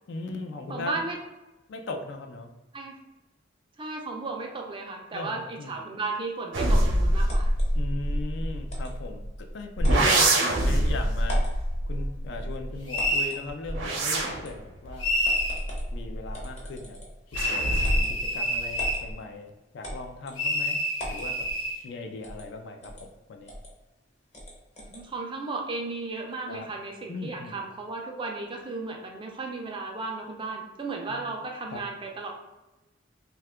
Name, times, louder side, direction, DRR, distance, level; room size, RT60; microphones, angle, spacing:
voice 1, 0.1-1.0 1.7-2.5 5.1-5.7 7.7-15.1 15.9-17.0 17.3-20.8 21.1-21.5 21.8-23.5 26.5-26.7 27.1-27.6 31.1-31.2 31.7-31.8, left 3 dB, 60° left, 4 dB, 0.4 m, -38 dB
voice 2, 0.7-1.2 2.7-3.0 3.8-7.5 24.8-32.3, right 3 dB, 25° right, 1 dB, 0.4 m, -35 dB
sound 1, 6.5-9.3 9.8-12.9 13.5-16.5 17.3-18.2 18.6-19.1, right 1 dB, 85° right, 0.6 m, -25 dB
sound 2, 7.3-7.7 8.7-8.9 9.8-10.0 10.6-10.7 11.2-11.6 13.0-13.4 14.1-14.6 15.2-15.9 16.3-17.2 17.8-18.1 18.8-19.0 19.8-20.4 21.0-21.3 22.2-22.5 22.8-23.0 23.5-23.7 24.3-25.0, equal, 35° left, 0.7 m, -39 dB
sound 3, 12.9-13.4 15.0-15.6 17.3-19.0 20.4-21.8, left 1 dB, 85° left, 0.8 m, -27 dB
2.7 x 2.3 x 3.4 m, 1.1 s
head